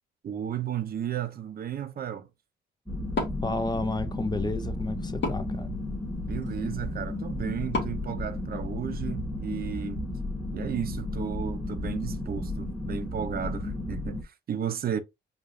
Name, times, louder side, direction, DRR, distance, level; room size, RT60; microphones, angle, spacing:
voice 1, 0.2-2.3 6.2-10.0 10.5-15.0, right 9 dB, 50° right, 0.6 m, -34 dB
sound 1, 2.9-14.2, left 1 dB, 5° left, 1.3 m, -33 dB
Wood, 3.1-9.1, left 3 dB, 60° left, 1.6 m, -38 dB
voice 2, 3.4-5.8, left 2 dB, 20° left, 0.6 m, -31 dB
4.8 x 2.5 x 2.6 m
cardioid pair, 90°, 20 cm